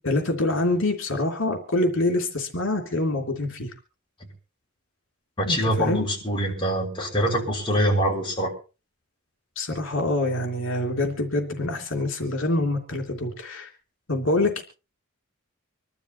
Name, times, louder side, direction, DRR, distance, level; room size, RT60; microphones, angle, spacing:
voice 1, 0.0-3.7 5.4-6.1 9.6-13.7 14.1-14.6, left 2 dB, 65° left, 3 dB, 3.1 m, -25 dB
voice 2, 5.4-8.5, equal, 25° left, -1 dB, 5.9 m, -24 dB
26.0 x 12.0 x 3.0 m, 0.33 s
head